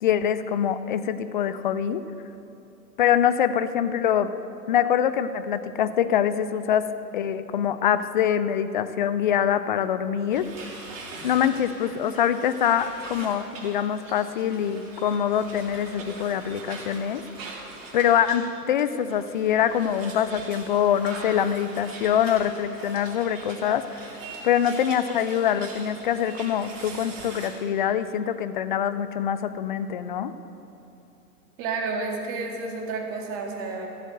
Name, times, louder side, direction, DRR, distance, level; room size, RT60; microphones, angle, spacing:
voice 1, 0.0-2.0 3.0-4.3 4.7-6.9 7.1-10.5 11.2-17.2 17.9-24.1 24.4-30.3, left 9 dB, 30° left, 13 dB, 0.5 m, -24 dB
sound 1, 10.3-18.4 18.7-27.5, right 3 dB, 50° right, 3.6 m, -42 dB
voice 2, 31.6-33.9, right 4 dB, 30° right, 1 dB, 2.1 m, -30 dB
14.5 x 8.0 x 7.7 m, 2.9 s
figure-of-eight pair, 120°, 48 cm